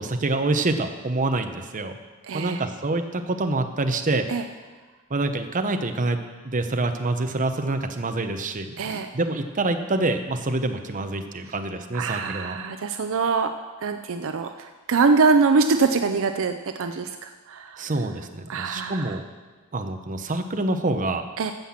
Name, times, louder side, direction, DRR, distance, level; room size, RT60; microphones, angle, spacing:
voice 1, 0.0-1.9 2.3-4.3 5.1-6.2 6.4-12.6 17.8-19.2 19.7-21.2, right 2 dB, 35° right, 6 dB, 0.9 m, -26 dB
voice 2, 2.2-2.6 4.3-4.4 8.8-9.1 11.9-13.5 13.8-17.9 18.5-19.2 21.4-21.5, right 4 dB, 60° right, 7 dB, 0.5 m, -23 dB
14.5 x 5.8 x 7.3 m, 1.3 s
head